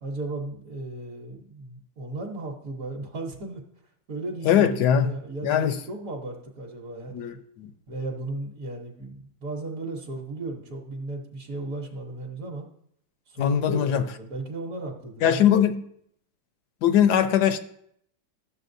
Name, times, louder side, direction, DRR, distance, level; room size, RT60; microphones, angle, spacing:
voice 1, 0.0-3.6 4.1-7.4 7.9-12.7 13.3-15.6, right 2 dB, 55° right, 1.3 m, -35 dB
voice 2, 4.4-5.1 5.4-5.8 7.1-7.7 13.4-14.0 15.2-15.8 16.8-17.6, left 9 dB, 70° left, 1.1 m, -21 dB
12.5 x 7.0 x 2.6 m
omnidirectional pair, 2.0 m